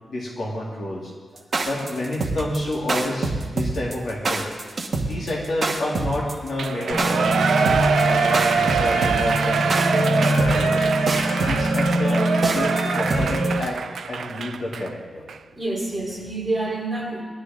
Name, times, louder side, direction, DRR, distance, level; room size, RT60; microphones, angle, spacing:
voice 1, 0.0-1.1 1.6-4.5 5.0-7.5 8.0-10.9 11.4-13.8 14.1-15.3, left 1 dB, 50° left, -3 dB, 2.4 m, -29 dB
voice 2, 1.3-1.7 5.0-5.1 15.5-17.2, right 2 dB, 15° right, -5 dB, 3.5 m, -28 dB
sound 1, 1.4-13.6, right 3 dB, 40° right, 1.3 m, -26 dB
Shout / Cheering, 6.6-14.9 15.3-15.4, right 6 dB, 75° right, 0.4 m, -23 dB
sound 2, 6.9-13.6, left 1 dB, 80° left, 2.9 m, -24 dB
20.0 x 12.0 x 3.7 m, 1.5 s
wide cardioid pair, 175°, 0 cm